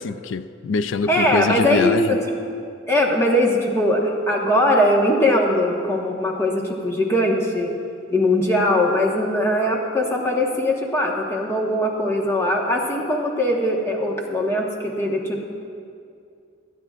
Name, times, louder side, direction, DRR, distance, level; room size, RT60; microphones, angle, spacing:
voice 1, 0.0-2.2, left 4 dB, 75° left, 12 dB, 0.4 m, -24 dB
voice 2, 1.1-2.2 2.9-7.7 8.1-14.7 15.0-15.4, left 1 dB, 15° left, -2 dB, 1.3 m, -20 dB
26.5 x 9.7 x 2.5 m, 2.4 s
head